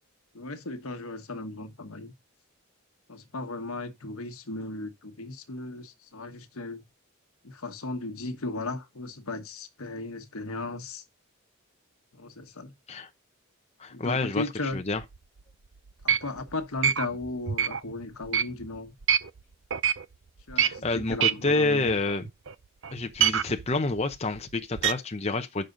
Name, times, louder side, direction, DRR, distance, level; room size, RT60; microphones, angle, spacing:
voice 1, 0.3-2.1 3.1-6.9 7.4-11.0 12.1-12.7 13.9-14.8 16.0-18.9 20.5-22.0, left 2 dB, 80° left, 1.3 m, -36 dB
voice 2, 13.8-15.0 20.6-22.2 22.9-25.7, left 3 dB, 30° left, 0.7 m, -28 dB
sound 1, 14.7-15.4 15.9-19.4 19.7-20.1 20.4-22.5 22.8-24.9, right 9 dB, 60° right, 0.6 m, -27 dB
9.0 x 6.6 x 3.9 m
head